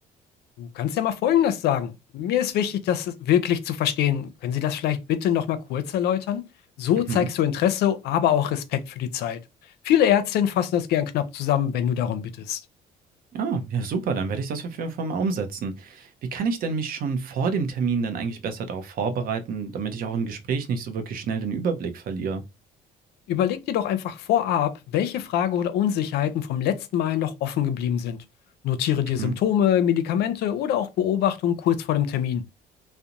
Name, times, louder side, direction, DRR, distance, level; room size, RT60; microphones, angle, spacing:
voice 1, 0.6-6.4 6.8-9.4 9.8-12.6 23.3-28.2 28.6-32.4, left 10 dB, 75° left, 0.5 m, -24 dB
voice 2, 13.3-22.4 29.2-29.3, right 5 dB, 60° right, 0.6 m, -28 dB
2.5 x 2.0 x 2.8 m
cardioid pair, 110°, 17 cm